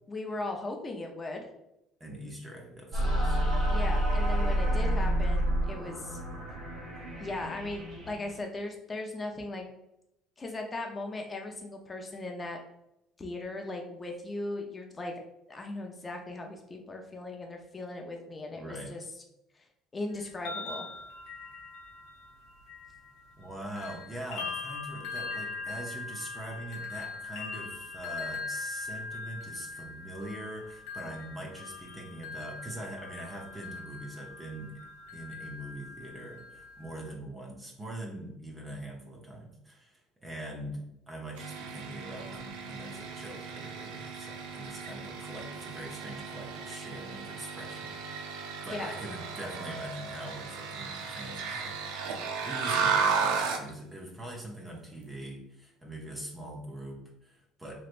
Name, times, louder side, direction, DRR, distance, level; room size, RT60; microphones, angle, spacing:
voice 1, 0.1-1.5 3.7-6.2 7.2-9.7 10.4-12.6 13.2-15.1 15.5-19.0 19.9-20.9 48.7-48.9, left 2 dB, 25° left, 3 dB, 0.7 m, -38 dB
voice 2, 2.0-3.4 18.6-18.9 23.4-34.8 35.1-40.8 41.1-48.0 48.6-51.8 52.5-57.8, right 1 dB, 15° right, -1 dB, 0.8 m, -42 dB
sound 1, 2.9-8.4, right 1 dB, 60° right, 1.4 m, -29 dB
sound 2, 20.2-23.5 23.8-37.1, left 4 dB, 85° left, 0.6 m, -41 dB
sound 3, 41.4-53.7, right 5 dB, 85° right, 0.5 m, -34 dB
3.2 x 3.1 x 2.5 m, 0.84 s
supercardioid pair, 100°, 0 cm